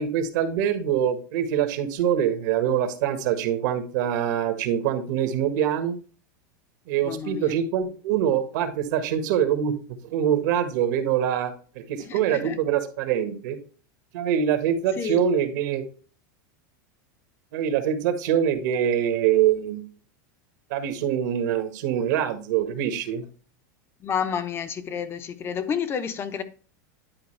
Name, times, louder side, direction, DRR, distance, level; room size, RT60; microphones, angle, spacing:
voice 1, 0.0-5.9 6.9-13.6 14.1-15.8 17.5-19.8 20.7-23.2, right 9 dB, 65° right, 1.6 m, -24 dB
voice 2, 7.0-7.6 12.0-12.6 15.0-15.2 24.0-26.4, left 7 dB, 25° left, 0.8 m, -30 dB
10.5 x 4.8 x 3.2 m
supercardioid pair, 150°, 10 cm